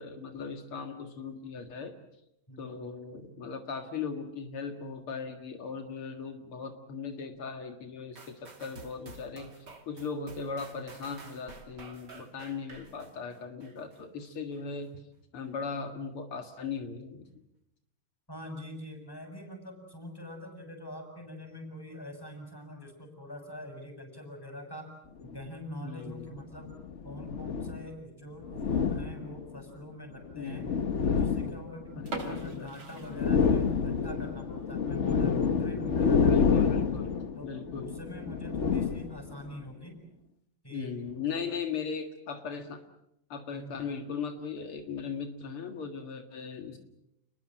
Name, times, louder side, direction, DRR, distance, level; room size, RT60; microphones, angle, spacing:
voice 1, 0.0-1.9 2.6-9.5 9.9-14.9 15.3-17.3 25.8-26.3 30.4-30.9 32.0-32.8 35.0-37.2 37.4-37.9 40.7-42.8 43.3-46.8, left 5 dB, 75° left, 6 dB, 2.8 m, -38 dB
voice 2, 2.5-2.8 18.3-24.9 25.2-26.7 27.0-30.7 31.1-36.7 37.3-37.5 37.8-40.0 40.6-41.5 43.5-43.8, left 1 dB, 10° left, 4 dB, 6.7 m, -44 dB
sound 1, 8.2-14.0 14.5-14.6, right 3 dB, 50° right, 3.5 m, -50 dB
sound 2, 25.2-25.4 26.4-27.9 28.4-29.6 30.3-32.7 33.0-39.5, left 6 dB, 45° left, 1.0 m, -29 dB
sound 3, 32.0-33.9 34.2-34.3 34.9-35.0 35.5-35.6 35.8-35.9 36.7-37.0, right 2 dB, 70° right, 5.0 m, -41 dB
29.5 x 21.5 x 7.6 m, 0.80 s
omnidirectional pair, 2.4 m